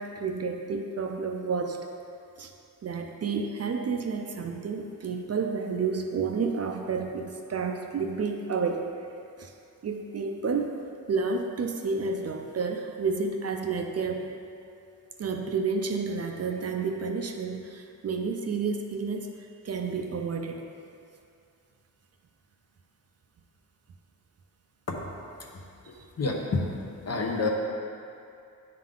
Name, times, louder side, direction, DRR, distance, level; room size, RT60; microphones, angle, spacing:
voice 1, 0.0-1.8 2.4-2.5 2.8-9.1 9.4-9.5 9.8-10.8 11.1-14.3 15.2-20.7, right 4 dB, 45° right, 3 dB, 0.5 m, -30 dB
voice 2, 26.2-26.7 27.0-27.5, left 3 dB, 45° left, -1 dB, 0.9 m, -28 dB
10.5 x 3.8 x 3.7 m, 2.5 s
wide cardioid pair, 155°, 34 cm